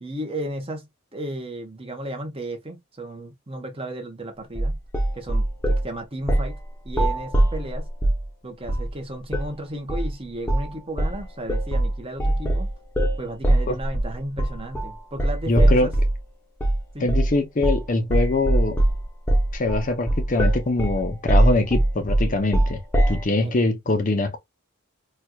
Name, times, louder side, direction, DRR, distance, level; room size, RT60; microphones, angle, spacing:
voice 1, 0.0-4.7 5.1-6.6 6.8-7.9 8.4-12.7 13.2-15.9 16.9-17.1 23.4-23.5, right 1 dB, 25° right, 1.0 m, -34 dB
sound 1, 4.6-5.9 6.3-6.6 6.9-8.3 8.7-8.9 9.3-9.5 9.9-10.1 10.5-10.7 11.0-16.2 16.6-16.8 17.1-17.4 17.6-17.9 18.1-23.2, right 1 dB, 10° left, 0.8 m, -21 dB
voice 2, 15.5-15.9 17.0-18.8 19.5-22.8 23.1-24.4, left 2 dB, 35° left, 0.6 m, -23 dB
4.4 x 2.4 x 2.3 m
head